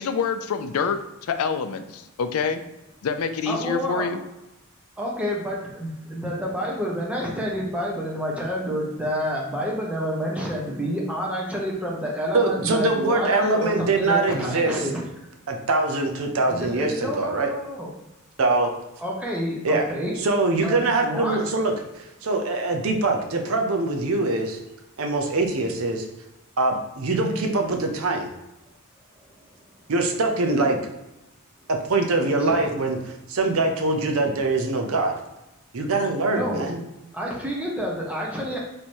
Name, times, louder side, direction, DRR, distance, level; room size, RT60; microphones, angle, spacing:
voice 1, 0.0-2.6 3.0-4.2, left 5 dB, 80° left, 9 dB, 0.4 m, -26 dB
voice 2, 3.5-4.1 5.0-15.0 16.5-17.9 19.0-20.2 20.6-20.7 21.0-21.4 27.1-27.4 32.5-32.7 36.3-36.7 37.1-38.6, equal, 5° right, -3 dB, 1.0 m, -29 dB
voice 3, 12.3-14.9 15.5-17.5 18.4-18.7 19.6-19.9 20.2-24.6 25.0-26.0 26.6-28.3 29.9-30.8 31.7-33.0 33.3-35.2 35.7-36.8, right 2 dB, 70° right, 4 dB, 0.6 m, -23 dB
3.2 x 2.9 x 4.3 m, 0.95 s
head